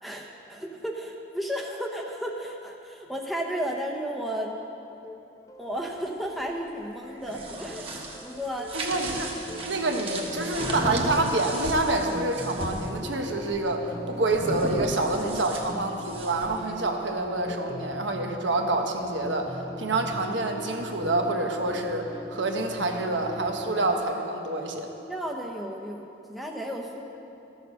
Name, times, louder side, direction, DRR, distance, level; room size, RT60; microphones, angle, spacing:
voice 1, 0.0-4.5 5.6-8.7 25.1-27.0, equal, ahead, -1 dB, 0.7 m, -33 dB
sound 1, 5.0-24.0, left 1 dB, 20° left, 0.3 m, -41 dB
sound 2, 7.1-12.9 14.3-16.6, right 1 dB, 30° right, 1.2 m, -34 dB
voice 2, 8.7-9.3 9.6-24.9, right 2 dB, 85° right, 3 dB, 1.1 m, -27 dB
13.5 x 6.8 x 6.5 m, 2.9 s
head